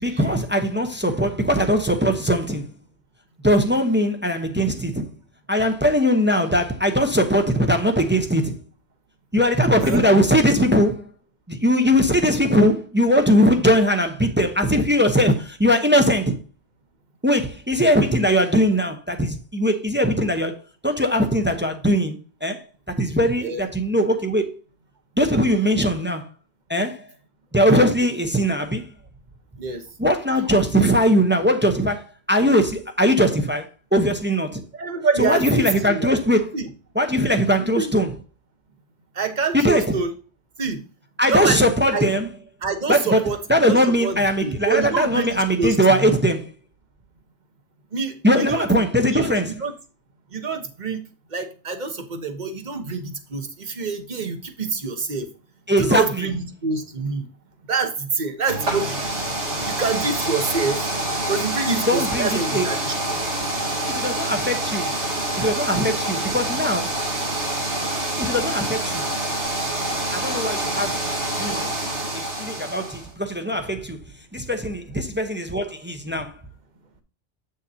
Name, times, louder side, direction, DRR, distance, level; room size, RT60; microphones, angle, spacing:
voice 1, 0.0-2.7 3.4-5.1 5.5-8.6 9.3-11.1 11.5-16.4 17.2-24.6 25.2-26.3 26.7-27.1 27.5-28.9 30.0-34.6 35.2-36.6 36.9-38.2 39.5-40.0 41.2-42.4 42.9-46.5 48.2-49.6 55.7-56.3 61.9-62.7 63.1-63.2 63.9-64.9 65.4-67.0 68.2-69.1 70.1-71.1 71.4-71.7 72.1-74.0 74.3-76.4, equal, 10° right, 0.7 m, -20 dB
voice 2, 34.7-36.2 36.5-36.6 37.8-37.9 39.2-40.1 40.6-40.8 41.3-42.0 42.6-43.4 43.7-46.2 47.9-48.7 49.0-49.3 49.6-49.7 50.3-51.0 51.3-55.3 55.8-57.2 57.7-59.0 59.7-60.8 61.3-62.9, right 4 dB, 45° right, 1.2 m, -26 dB
sound 1, 58.4-73.1, right 1 dB, 80° right, 3.1 m, -26 dB
8.0 x 6.6 x 2.8 m
omnidirectional pair, 1.1 m